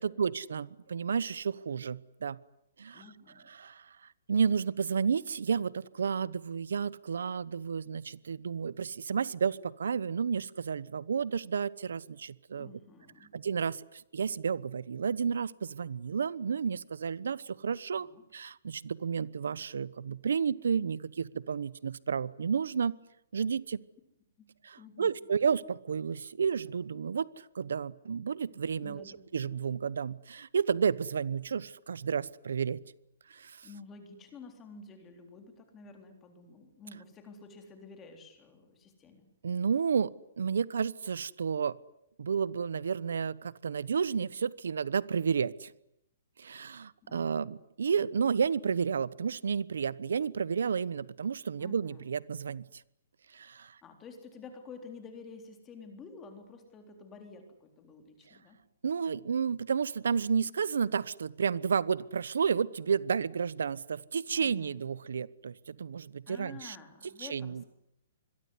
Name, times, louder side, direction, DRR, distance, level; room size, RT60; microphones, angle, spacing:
voice 1, 0.0-2.4 2.8-3.0 3.5-4.0 4.3-12.7 13.3-18.1 18.3-22.9 23.3-23.8 24.6-29.0 29.3-32.8 33.3-33.7 39.4-40.1 40.4-41.7 42.2-45.7 46.4-52.6 53.3-53.7 58.8-66.8 67.2-67.6, right 6 dB, 85° right, 20 dB, 1.0 m, -31 dB
voice 2, 2.9-3.5 12.5-13.3 18.0-18.2 24.4-24.5 24.8-25.1 28.8-29.2 33.6-39.3 47.0-47.5 51.6-52.1 53.8-58.6 64.3-64.8 66.3-67.7, left 4 dB, 10° left, 5 dB, 3.7 m, -50 dB
26.5 x 22.0 x 9.8 m, 0.80 s
hypercardioid pair, 175°, 0 cm